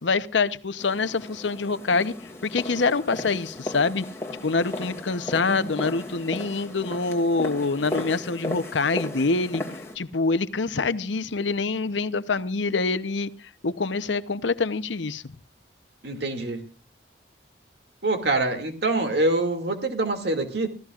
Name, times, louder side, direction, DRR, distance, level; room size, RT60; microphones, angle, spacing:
voice 1, 0.0-2.1 2.4-4.0 4.4-9.6 10.0-13.3 13.6-15.2, left 4 dB, 90° left, 13 dB, 0.8 m, -25 dB
sound 1, 0.8-10.0, left 1 dB, 15° left, 2.4 m, -35 dB
voice 2, 16.0-16.7 18.0-20.7, right 2 dB, 65° right, 5 dB, 2.4 m, -25 dB
25.5 x 15.5 x 2.5 m, 0.35 s
head